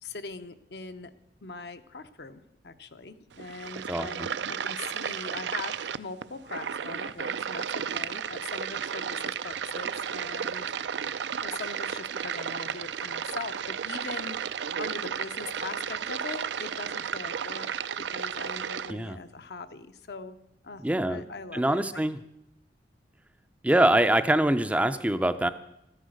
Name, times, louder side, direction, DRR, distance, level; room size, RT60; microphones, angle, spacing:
voice 1, 0.0-1.1 1.4-10.8 11.4-14.4 14.8-17.7 18.1-20.4 20.6-22.0, left 4 dB, 70° left, 9 dB, 0.7 m, -41 dB
sound 1, 3.3-18.9, right 7 dB, 80° right, 0.4 m, -33 dB
voice 2, 3.9-4.3 18.9-19.2 20.8-21.2 21.5-22.2 23.6-25.5, right 1 dB, 10° right, 10 dB, 0.4 m, -24 dB
13.5 x 9.9 x 6.4 m, 0.84 s
head